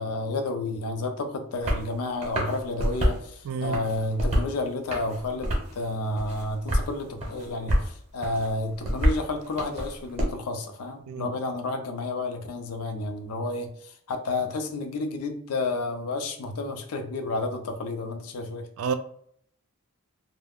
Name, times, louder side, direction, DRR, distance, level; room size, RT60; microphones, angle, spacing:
voice 1, 0.0-18.7, left 2 dB, 80° left, 0.4 m, -31 dB
sound 1, 1.6-1.9 2.2-3.2 3.6-4.5 4.9-5.8 6.2-6.9 7.2-7.9 8.2-10.2, equal, 30° right, 0.7 m, -27 dB
voice 2, 3.4-3.8 11.1-11.3 18.8-18.9, right 6 dB, 65° right, 0.3 m, -29 dB
2.3 x 2.0 x 3.4 m
head